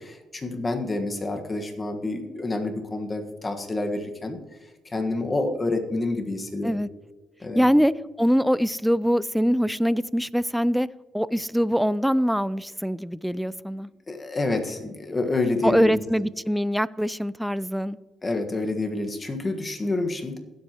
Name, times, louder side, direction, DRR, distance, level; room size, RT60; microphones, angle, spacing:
voice 1, 0.0-4.4 4.8-6.9 7.4-7.7 14.1-16.0 18.2-20.4, left 2 dB, 25° left, 5 dB, 1.5 m, -28 dB
voice 2, 7.6-10.9 11.1-13.9 15.6-18.0, equal, ahead, 19 dB, 0.3 m, -23 dB
16.5 x 7.9 x 3.0 m, 1.2 s
cardioid pair, 90°, 0 cm